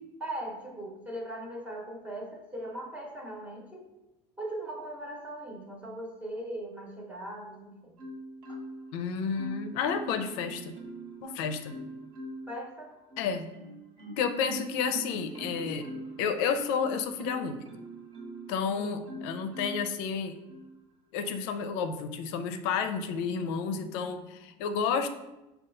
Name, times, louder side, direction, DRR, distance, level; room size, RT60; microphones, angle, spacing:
voice 1, 0.2-3.9 4.4-8.0 12.5-13.0 18.7-19.1, right 1 dB, 10° right, -2 dB, 0.8 m, -39 dB
Marimba xylophone, 8.0-9.0 9.4-11.2 11.7-12.6 13.1-18.5 19.1-19.9 20.5-20.7, equal, 40° right, 1.0 m, -42 dB
voice 2, 8.9-10.8 11.2-11.8 13.2-13.5 14.2-15.9 16.2-17.6 18.5-20.4 21.1-25.1, left 6 dB, 80° left, 8 dB, 0.5 m, -31 dB
5.4 x 2.3 x 3.7 m, 0.98 s
cardioid pair, 145°, 15 cm